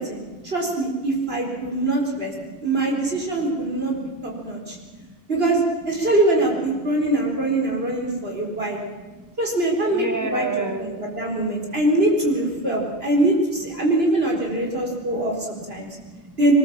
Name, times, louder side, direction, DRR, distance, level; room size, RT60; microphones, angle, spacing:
voice 1, 0.0-2.3 2.6-4.0 4.2-4.8 5.3-8.8 9.4-15.9 16.4-16.5, right 1 dB, 60° right, 0 dB, 4.6 m, -23 dB
voice 2, 3.8-4.6 4.8-5.2 7.6-8.6 9.0-9.3 9.9-11.1 11.6-11.8 14.8-16.5, right 2 dB, 15° right, 5 dB, 1.9 m, -35 dB
22.5 x 20.5 x 7.4 m, 1.3 s
omnidirectional pair, 1.2 m